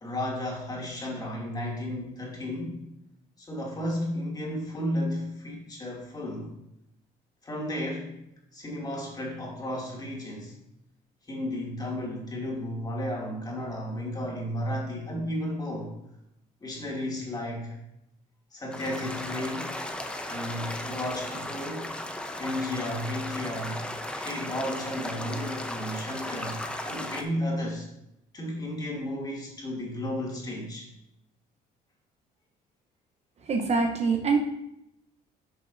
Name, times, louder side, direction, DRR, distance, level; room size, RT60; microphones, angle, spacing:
voice 1, 0.0-2.8 3.4-6.5 7.4-8.2 8.5-10.5 11.3-15.9 16.6-17.8 18.5-19.8 20.2-21.9 22.4-23.8 24.2-27.9 28.3-30.9, left 1 dB, 25° left, -3 dB, 2.5 m, -33 dB
sound 1, 18.7-27.2, left 1 dB, 5° left, 0.8 m, -36 dB
voice 2, 33.5-34.4, right 4 dB, 40° right, 3 dB, 0.9 m, -24 dB
10.5 x 6.2 x 2.6 m, 0.82 s
cardioid pair, 110°, 17 cm